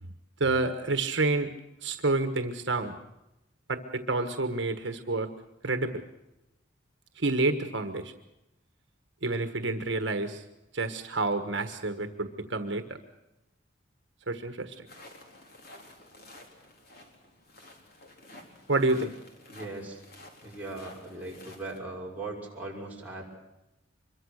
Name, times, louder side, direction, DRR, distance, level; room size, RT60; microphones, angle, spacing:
voice 1, 0.4-1.5 1.8-3.0 3.7-5.3 5.6-6.0 7.2-8.1 9.2-10.4 10.7-13.0 14.3-14.7 18.7-19.1, right 2 dB, 65° right, 8 dB, 1.5 m, -28 dB
sound 1, 14.9-21.8, left 1 dB, 55° left, 4.1 m, -51 dB
voice 2, 19.5-20.0 20.4-23.2, right 2 dB, 10° right, -3 dB, 6.1 m, -39 dB
25.5 x 23.0 x 6.5 m, 0.92 s
head